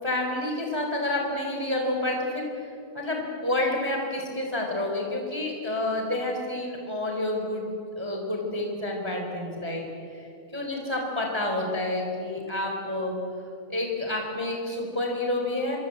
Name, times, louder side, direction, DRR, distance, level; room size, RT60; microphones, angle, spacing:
voice 1, 0.0-7.6 8.0-9.8 10.1-13.2 13.7-15.8, left 1 dB, 10° right, 1 dB, 3.8 m, -29 dB
25.5 x 25.0 x 8.0 m, 2.5 s
omnidirectional pair, 3.4 m